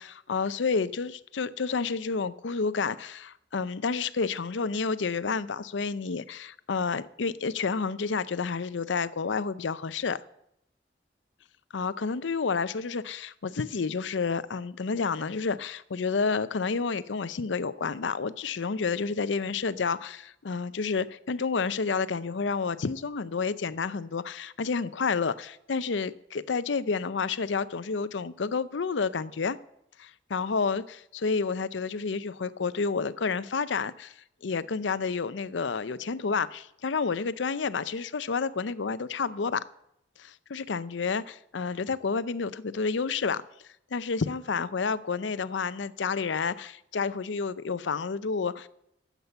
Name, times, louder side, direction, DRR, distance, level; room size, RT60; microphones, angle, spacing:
voice 1, 0.0-10.2 11.7-29.6 30.0-34.1 34.4-39.6 40.2-43.4 43.9-48.7, left 5 dB, 80° left, 0.6 m, -30 dB
12.5 x 8.2 x 6.9 m
head